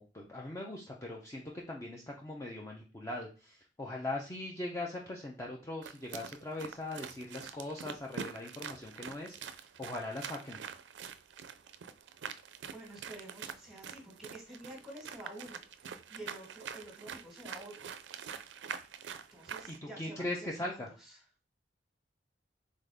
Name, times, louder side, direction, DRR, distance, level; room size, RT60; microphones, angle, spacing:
voice 1, 0.0-1.4 1.7-10.6 19.8-20.9, left 2 dB, 15° left, -1 dB, 0.6 m, -40 dB
sound 1, 5.8-19.8, right 7 dB, 75° right, 0.4 m, -45 dB
voice 2, 12.7-15.6 16.1-17.9 19.3-21.2, right 1 dB, ahead, 0 dB, 1.5 m, -49 dB
4.0 x 3.7 x 3.4 m, 0.34 s
head